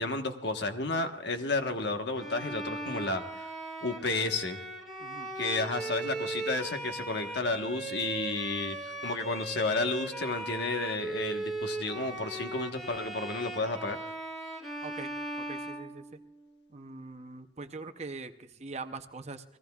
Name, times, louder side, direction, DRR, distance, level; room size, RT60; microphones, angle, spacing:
voice 1, 0.0-3.5 3.8-4.6 5.4-14.0, left 3 dB, 60° left, 6 dB, 1.3 m, -32 dB
Bowed string instrument, 2.2-16.4, right 2 dB, ahead, 1.8 m, -38 dB
voice 2, 14.8-15.1 15.5-16.0 16.7-19.4, right 3 dB, 35° right, 8 dB, 0.7 m, -42 dB
29.0 x 18.5 x 2.4 m, 0.73 s
head